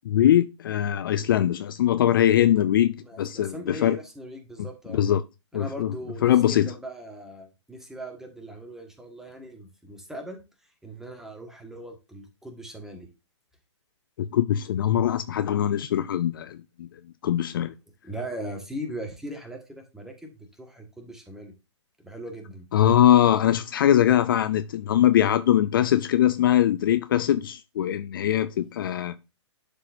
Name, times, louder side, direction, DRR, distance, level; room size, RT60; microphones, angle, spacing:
voice 1, 0.0-4.0 4.9-5.2 5.5-5.9 6.2-6.7 14.2-16.9 17.2-17.7 22.7-29.2, left 11 dB, 45° left, 0.5 m, -22 dB
voice 2, 3.0-5.0 5.5-10.4 10.8-13.1 18.0-20.3 20.6-21.5 22.0-22.6, right 1 dB, 5° right, 1.5 m, -39 dB
11.0 x 4.5 x 2.6 m
figure-of-eight pair, 120°, 15 cm